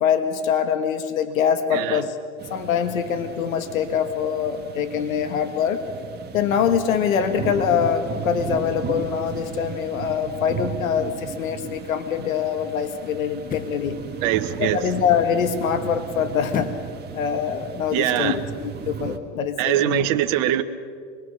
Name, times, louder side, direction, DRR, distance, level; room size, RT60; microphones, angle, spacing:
voice 1, 0.0-2.2 2.5-5.8 6.3-14.0 14.6-16.7 17.1-20.1, left 7 dB, 85° left, 9 dB, 1.6 m, -24 dB
sound 1, 2.4-19.2, right 7 dB, 25° right, 1.8 m, -35 dB
sound 2, 11.6-11.7 13.4-13.9 16.5-17.0 17.4-17.5, left 7 dB, 20° left, 0.8 m, -32 dB
voice 2, 14.2-14.8 17.9-18.4 19.6-20.6, right 13 dB, 55° right, 7 dB, 1.3 m, -22 dB
25.0 x 21.0 x 6.7 m, 2.3 s
hypercardioid pair, 110°, 40 cm